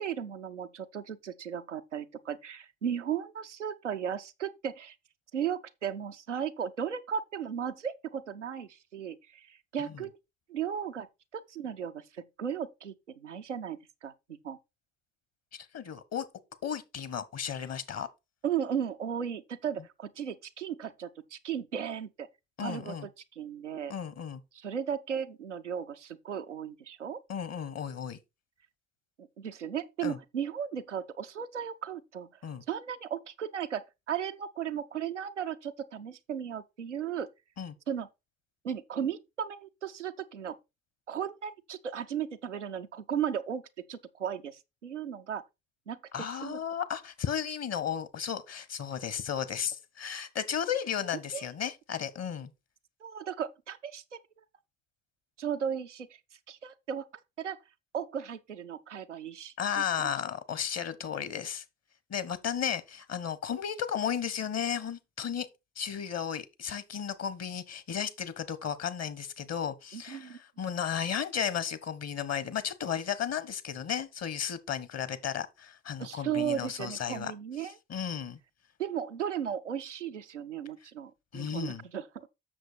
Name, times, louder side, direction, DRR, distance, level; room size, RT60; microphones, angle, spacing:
voice 1, 0.0-5.0 5.3-10.1 10.5-11.1 11.3-14.1 14.4-14.6 18.4-22.3 22.6-23.9 24.5-27.2 29.2-32.3 32.7-37.3 37.9-38.1 38.6-40.6 41.1-43.6 43.9-45.4 45.9-46.0 46.3-46.6 51.3-51.5 53.0-54.2 55.4-56.1 56.5-57.1 57.4-57.6 57.9-60.1 69.9-70.4 76.0-77.7 78.8-82.3, right 8 dB, 90° right, 0.5 m, -36 dB
voice 2, 15.5-16.2 16.6-18.1 22.6-23.1 23.9-24.4 27.3-28.2 30.0-30.2 32.4-32.6 37.6-37.7 46.1-52.5 59.6-61.6 62.1-65.5 65.8-77.3 77.9-78.4 81.3-81.8, left 8 dB, 45° left, 1.3 m, -34 dB
7.6 x 6.5 x 4.3 m
figure-of-eight pair, 45°, 35 cm